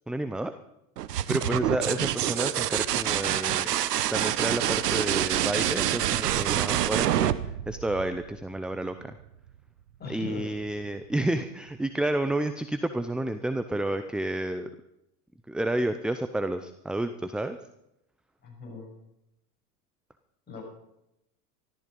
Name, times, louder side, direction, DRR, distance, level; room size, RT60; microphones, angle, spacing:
voice 1, 0.1-0.5 1.3-3.8 4.1-9.2 10.1-14.7 15.5-17.6, right 1 dB, ahead, 10 dB, 0.5 m, -30 dB
sound 1, 1.0-8.5 10.3-10.9, right 12 dB, 85° right, 0.9 m, -27 dB
voice 2, 1.3-2.0 10.0-10.4 18.4-18.9 20.5-20.6, left 4 dB, 20° left, -2 dB, 7.4 m, -39 dB
13.5 x 13.5 x 5.4 m, 0.85 s
hypercardioid pair, 105°, 46 cm